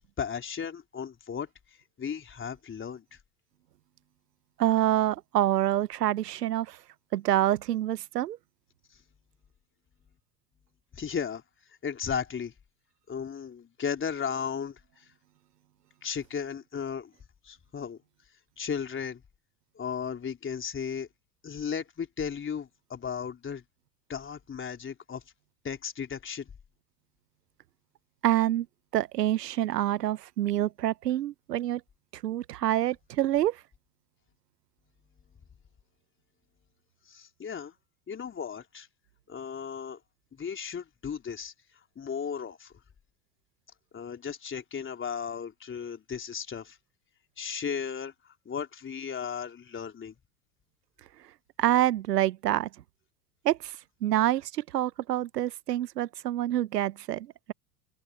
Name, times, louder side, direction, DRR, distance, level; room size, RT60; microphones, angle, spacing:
voice 1, 0.2-1.5 2.0-3.0 10.9-11.4 11.8-12.5 13.1-14.8 16.0-17.1 17.4-18.0 18.6-19.2 19.8-21.1 21.4-23.6 24.1-25.2 25.6-26.5 37.1-37.7 38.1-38.9 39.3-40.0 40.3-41.5 42.0-42.7 43.9-46.8 47.4-50.1, left 7 dB, 25° left, 3.7 m, -35 dB
voice 2, 4.6-6.8 7.1-8.4 28.2-28.7 28.9-31.8 32.1-33.6 51.6-52.7 53.4-53.8 54.0-57.5, right 13 dB, 75° right, 1.0 m, -27 dB
figure-of-eight pair, 80°, 48 cm